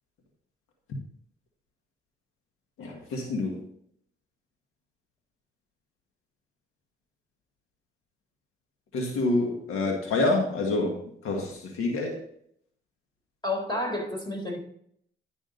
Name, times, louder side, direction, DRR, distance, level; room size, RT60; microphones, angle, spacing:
voice 1, 2.8-3.7 8.9-12.2, left 2 dB, 90° left, 2 dB, 1.7 m, -27 dB
voice 2, 13.4-14.6, left 1 dB, 20° left, 2 dB, 3.9 m, -30 dB
11.0 x 6.2 x 3.9 m, 0.67 s
supercardioid pair, 60°, 21 cm